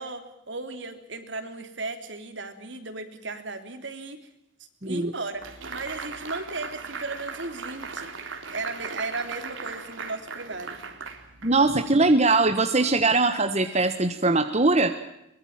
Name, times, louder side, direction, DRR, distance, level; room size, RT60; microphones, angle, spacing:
voice 1, 0.0-4.2 4.8-5.4 5.7-8.1 8.5-10.8, right 3 dB, 70° right, 7 dB, 3.5 m, -35 dB
sound 1, 5.4-11.9, right 4 dB, 85° right, 3.6 m, -38 dB
voice 2, 11.4-14.9, right 3 dB, 35° right, 8 dB, 1.4 m, -21 dB
23.5 x 22.5 x 7.4 m, 0.83 s
head